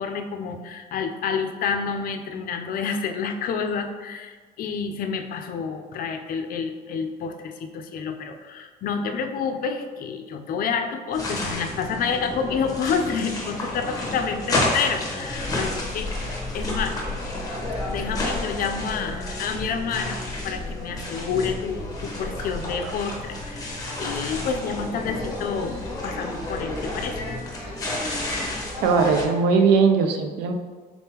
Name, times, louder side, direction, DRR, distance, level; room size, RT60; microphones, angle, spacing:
voice 1, 0.0-16.1 16.5-17.0 17.9-20.2 20.4-27.2 28.6-28.8, left 6 dB, 60° left, 6 dB, 0.5 m, -29 dB
sound 1, 11.1-29.2, left 2 dB, 20° left, 1.0 m, -30 dB
voice 2, 28.8-30.5, right 5 dB, 85° right, 5 dB, 0.5 m, -19 dB
4.1 x 3.5 x 2.9 m, 1.5 s
cardioid pair, 110°, 17 cm